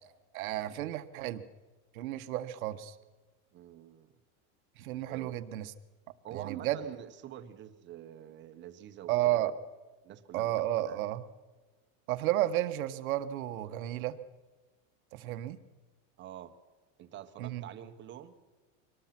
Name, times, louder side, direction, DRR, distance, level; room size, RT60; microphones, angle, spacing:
voice 1, 0.3-1.4 1.9-2.9 4.8-5.7 6.3-6.8 9.1-9.5 10.3-11.2 12.1-14.1 15.1-15.6 17.4-17.6, right 14 dB, 85° right, 11 dB, 1.5 m, -32 dB
voice 2, 3.5-4.1 5.0-5.4 6.2-9.6 10.0-10.5 10.9-11.1 16.2-16.5 17.0-18.3, right 11 dB, 25° right, 10 dB, 1.2 m, -46 dB
24.5 x 19.0 x 6.0 m, 1.3 s
supercardioid pair, 160°, 41 cm